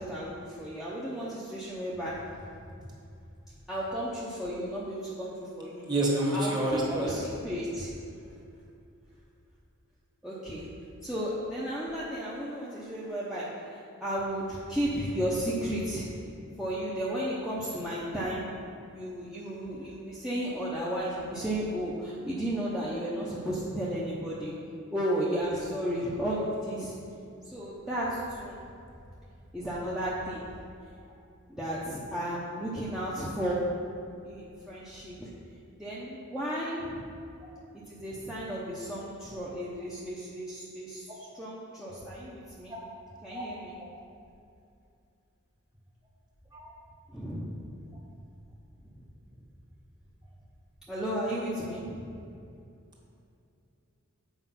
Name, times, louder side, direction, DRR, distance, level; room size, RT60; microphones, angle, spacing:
voice 1, 0.0-2.2 3.7-5.9 6.3-7.9 10.2-10.7 11.0-16.1 16.6-18.4 18.9-24.5 24.9-27.0 27.4-28.6 29.5-30.5 31.5-33.6 34.2-35.3 35.8-37.1 37.7-42.7 43.2-43.8 47.1-47.7 48.8-49.0 50.9-52.1, equal, 5° right, -8 dB, 0.8 m, -34 dB
voice 2, 5.9-7.2 42.7-42.8 43.3-43.4 43.8-43.9 46.5-46.7, right 1 dB, 20° right, -3 dB, 1.4 m, -28 dB
8.1 x 4.8 x 5.7 m, 2.5 s
head